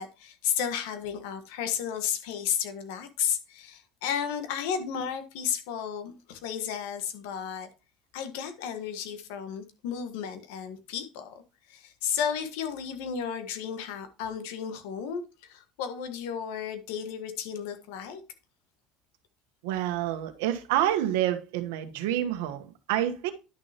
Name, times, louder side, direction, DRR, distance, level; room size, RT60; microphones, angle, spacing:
voice 1, 0.0-7.7 8.1-11.3 11.7-18.2, left 8 dB, 85° left, 1.4 m, -33 dB
voice 2, 19.6-23.3, right 12 dB, 90° right, 1.1 m, -28 dB
10.5 x 6.5 x 2.9 m
supercardioid pair, 105°, 0 cm